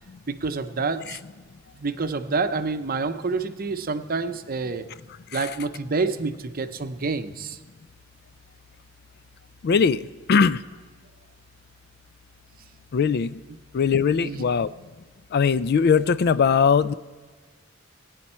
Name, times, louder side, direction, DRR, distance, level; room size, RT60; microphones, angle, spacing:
voice 1, 0.3-1.2 1.7-4.9 5.3-7.6 14.2-14.4, right 4 dB, 45° right, 9 dB, 0.7 m, -28 dB
voice 2, 9.6-10.0 10.3-10.6 12.9-13.4 13.7-14.7 15.3-16.9, left 6 dB, 55° left, 16 dB, 0.4 m, -20 dB
19.5 x 9.4 x 4.3 m, 1.4 s
head